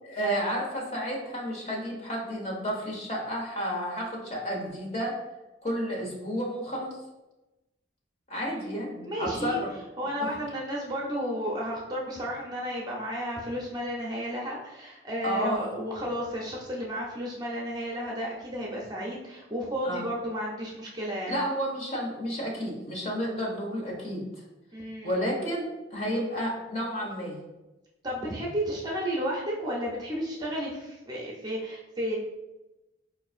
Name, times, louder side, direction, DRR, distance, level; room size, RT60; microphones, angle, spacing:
voice 1, 0.0-5.2 5.6-7.0 8.3-9.7 15.2-15.6 19.8-20.0 21.3-24.2 25.0-27.4, equal, 35° left, -2 dB, 0.9 m, -31 dB
voice 2, 8.3-9.6 10.0-21.4 24.7-25.2 28.0-32.2, equal, 20° right, -3 dB, 0.5 m, -33 dB
4.5 x 2.5 x 2.4 m, 1.0 s
head